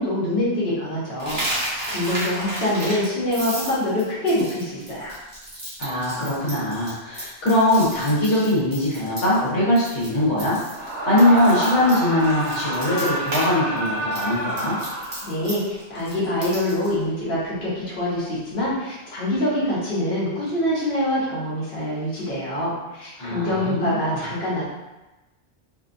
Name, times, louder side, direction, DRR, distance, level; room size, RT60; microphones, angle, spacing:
voice 1, 0.0-5.1 15.2-24.7, left 1 dB, 50° left, -9 dB, 1.1 m, -25 dB
Coin (dropping), 1.2-9.5 9.8-10.1 10.4-13.5 13.8-16.9, right 1 dB, 25° right, 0.7 m, -32 dB
voice 2, 5.8-14.8 23.2-24.0, left 1 dB, 80° left, -8 dB, 1.2 m, -21 dB
Screaming, 10.7-15.5, right 1 dB, 55° right, 1.0 m, -28 dB
2.6 x 2.2 x 2.5 m, 1.0 s
omnidirectional pair, 1.2 m